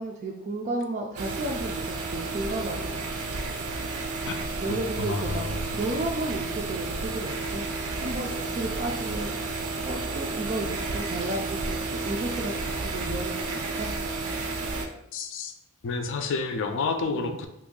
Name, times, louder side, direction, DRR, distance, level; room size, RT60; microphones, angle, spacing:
voice 1, 0.0-3.1 4.6-7.7 8.0-13.9 17.1-17.4, right 2 dB, 35° right, 0 dB, 0.3 m, -33 dB
sound 1, 1.2-14.9, right 3 dB, 90° right, 0.5 m, -32 dB
voice 2, 4.7-5.7 15.1-15.5 15.8-17.5, left 4 dB, 60° left, 6 dB, 0.4 m, -30 dB
3.0 x 2.5 x 3.7 m, 0.83 s
head